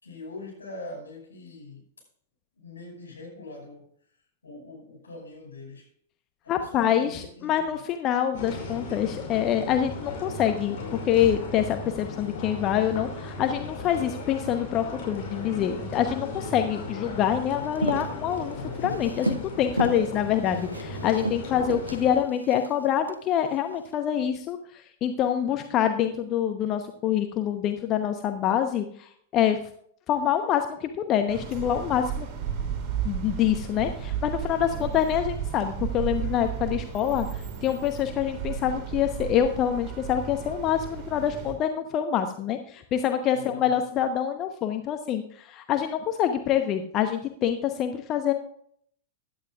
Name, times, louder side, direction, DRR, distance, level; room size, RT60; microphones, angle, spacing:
voice 1, 0.0-1.8 2.6-3.9 4.4-5.9 6.4-7.8 19.8-20.2 34.6-35.0 43.3-43.8, left 2 dB, 75° left, 0 dB, 5.7 m, -43 dB
voice 2, 6.5-29.6 30.1-32.3 33.0-48.3, left 10 dB, 30° left, 7 dB, 0.9 m, -26 dB
sound 1, 8.3-22.2, left 2 dB, 50° left, 5.3 m, -36 dB
Walk footsteps, 17.6-19.5 19.8-20.1 20.4-23.1 23.7-23.9, right 1 dB, 85° right, 0.8 m, -32 dB
sound 2, 31.3-41.5, right 8 dB, 30° right, 4.6 m, -34 dB
16.0 x 11.5 x 2.4 m, 0.63 s
figure-of-eight pair, 95°, 0 cm